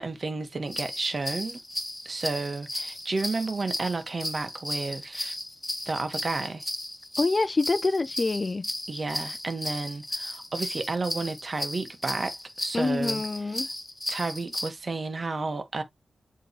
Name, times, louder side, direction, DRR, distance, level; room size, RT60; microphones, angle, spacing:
voice 1, 0.0-1.6 2.1-5.4 5.9-6.6 8.9-13.2 13.6-13.7 14.1-15.8, right 3 dB, 45° right, 1.8 m, -32 dB
sound 1, 0.7-14.7, left 1 dB, 15° left, 0.9 m, -35 dB
voice 2, 7.2-8.7 12.7-13.7, left 3 dB, 40° left, 0.5 m, -26 dB
8.2 x 3.8 x 3.2 m
cardioid pair, 75°, 0 cm